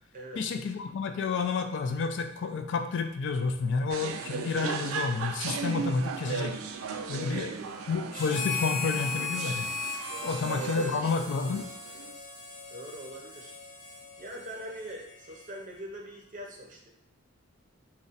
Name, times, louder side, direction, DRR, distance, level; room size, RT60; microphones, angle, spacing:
voice 1, 0.4-6.6 7.1-7.5 7.9-9.7 10.2-11.7, left 4 dB, 65° left, 7 dB, 0.3 m, -30 dB
sound 1, 3.9-12.1, right 6 dB, 85° right, 0.3 m, -37 dB
voice 2, 7.1-7.7 10.0-11.2 12.7-13.6 14.2-16.9, equal, 40° right, 0 dB, 0.6 m, -43 dB
Harmonica, 8.1-15.8, left 4 dB, 40° left, 0.7 m, -38 dB
2.5 x 2.1 x 3.9 m, 0.71 s
head